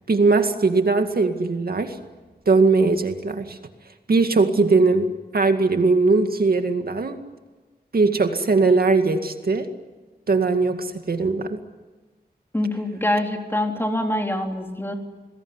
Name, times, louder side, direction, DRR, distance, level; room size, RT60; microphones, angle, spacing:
voice 1, 0.1-2.0 2.5-3.6 4.1-7.2 7.9-9.7 10.3-11.6, right 3 dB, 65° right, 6 dB, 2.1 m, -20 dB
voice 2, 12.5-15.0, left 1 dB, 15° left, 3 dB, 3.6 m, -24 dB
28.5 x 21.0 x 9.8 m, 1.3 s
wide cardioid pair, 100°, 17 cm